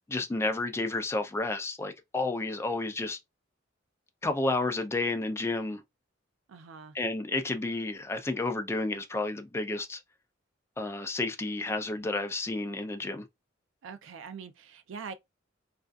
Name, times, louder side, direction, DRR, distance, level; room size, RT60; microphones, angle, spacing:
voice 1, 0.1-3.2 4.2-5.8 6.9-10.0 10.8-13.3, left 2 dB, 15° left, 0.3 m, -31 dB
voice 2, 6.5-7.0 13.8-15.1, right 5 dB, 70° right, 0.4 m, -43 dB
2.5 x 2.3 x 2.2 m
head